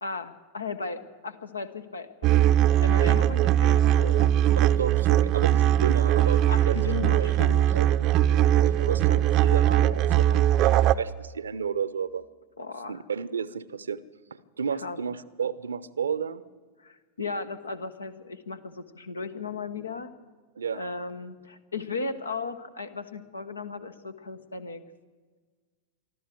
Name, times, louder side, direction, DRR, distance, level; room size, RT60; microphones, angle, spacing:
voice 1, 0.0-2.4 2.8-4.3 6.2-7.7 12.6-13.0 14.8-15.0 16.8-20.1 20.7-24.8, left 4 dB, 75° left, 10 dB, 1.3 m, -36 dB
sound 1, 2.2-10.9, right 12 dB, 40° right, 0.6 m, -21 dB
voice 2, 4.8-6.8 7.1-7.3 7.7-12.2 12.9-14.0 14.6-16.4 20.6-20.8, right 6 dB, 70° right, 18 dB, 0.8 m, -32 dB
24.0 x 14.0 x 7.8 m, 1.4 s
figure-of-eight pair, 90°, 0 cm